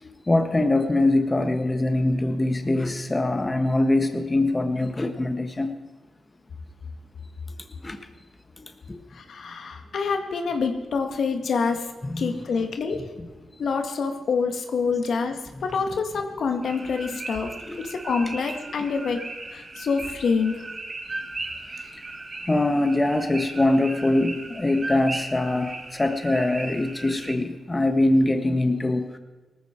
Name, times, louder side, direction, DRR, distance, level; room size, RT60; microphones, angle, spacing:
voice 1, 0.0-5.7 7.8-8.0 8.6-9.0 12.0-12.3 17.6-17.8 21.9-22.0 22.5-29.1, left 2 dB, 25° left, 7 dB, 1.5 m, -23 dB
voice 2, 9.1-11.9 12.2-13.0 13.6-17.5 17.8-19.2 19.5-20.6, left 5 dB, 70° left, 5 dB, 1.9 m, -26 dB
sound 1, 16.6-27.3, right 2 dB, 45° right, 3.1 m, -37 dB
18.5 x 14.5 x 4.6 m, 1.3 s
supercardioid pair, 50°, 0 cm